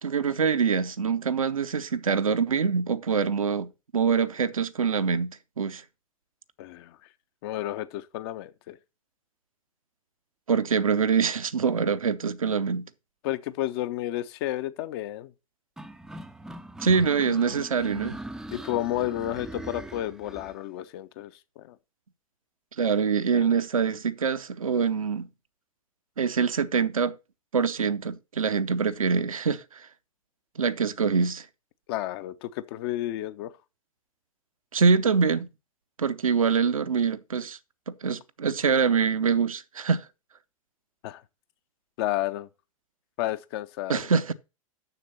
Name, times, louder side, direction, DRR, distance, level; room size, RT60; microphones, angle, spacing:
voice 1, 0.0-5.8 10.5-12.9 16.8-18.2 22.8-25.3 26.2-27.1 27.5-29.9 30.6-31.5 34.7-35.5 36.0-37.6 37.9-40.1 43.9-44.3, right 5 dB, 75° right, 0.7 m, -25 dB
voice 2, 6.6-7.0 7.4-8.8 13.2-15.3 18.5-21.8 23.3-23.5 31.9-33.5 41.0-41.2 42.0-42.5 43.2-44.1, left 14 dB, 45° left, 0.7 m, -31 dB
sound 1, 15.8-20.6, right 1 dB, 5° right, 0.4 m, -40 dB
6.8 x 6.7 x 5.6 m
figure-of-eight pair, 90°, 18 cm